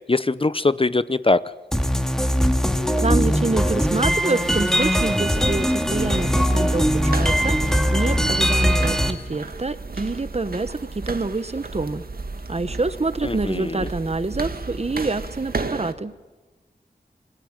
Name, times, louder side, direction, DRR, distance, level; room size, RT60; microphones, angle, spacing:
voice 1, 0.0-1.4 13.2-13.9, left 3 dB, 30° left, 15 dB, 0.8 m, -22 dB
sound 1, 1.7-9.1, equal, 5° left, 2.2 m, -20 dB
voice 2, 3.0-12.0 12.5-16.1, right 3 dB, 35° right, 13 dB, 1.2 m, -26 dB
sound 2, 4.4-15.9, right 3 dB, 55° right, 1.9 m, -34 dB
27.0 x 22.0 x 9.0 m, 1.2 s
wide cardioid pair, 90°, 18 cm